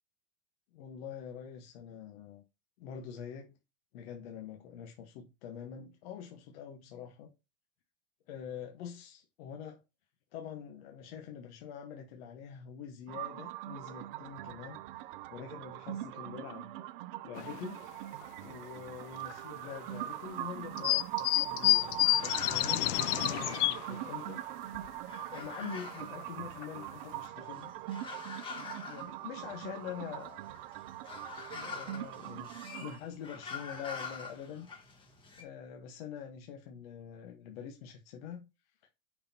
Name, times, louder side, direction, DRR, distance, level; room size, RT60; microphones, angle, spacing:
voice 1, 0.7-2.4 2.8-3.5 3.9-7.3 8.3-9.8 10.3-14.8 15.3-16.7 17.2-17.9 18.4-22.9 23.2-24.9 25.3-27.7 28.6-30.4 31.5-34.7 35.4-38.5, left 8 dB, 60° left, 1.3 m, -45 dB
sound 1, 13.1-33.0, right 15 dB, 50° right, 0.5 m, -42 dB
sound 2, 17.3-17.6 18.2-18.3 19.3-19.4 20.8-23.9 24.4-24.5 24.7-24.9 25.3-25.6 26.2-26.3 26.6-26.8 27.2-27.3, left 17 dB, 85° left, 0.5 m, -29 dB
sound 3, 20.3-24.2 24.5-35.4, left 5 dB, 15° left, 1.4 m, -46 dB
6.5 x 5.6 x 2.8 m
supercardioid pair, 155°, 34 cm